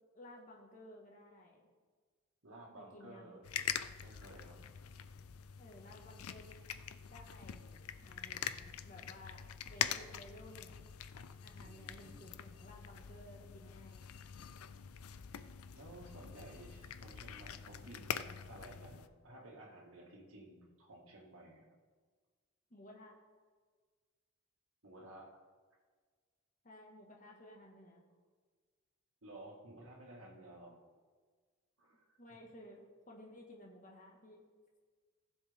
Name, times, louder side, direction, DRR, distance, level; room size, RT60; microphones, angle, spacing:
voice 1, 0.2-1.6 2.8-3.4 5.6-6.7 7.1-10.9 11.4-14.0 22.7-23.2 26.6-28.0 32.2-34.4, left 1 dB, 35° left, 0 dB, 1.7 m, -56 dB
voice 2, 2.4-3.5 4.0-4.6 11.6-12.3 15.7-21.6 24.8-25.4 29.2-30.8 31.8-32.2, right 1 dB, 70° right, -2 dB, 2.1 m, -54 dB
sound 1, 3.4-19.1, left 9 dB, 85° left, 0.5 m, -44 dB
15.5 x 7.1 x 3.6 m, 1.5 s
head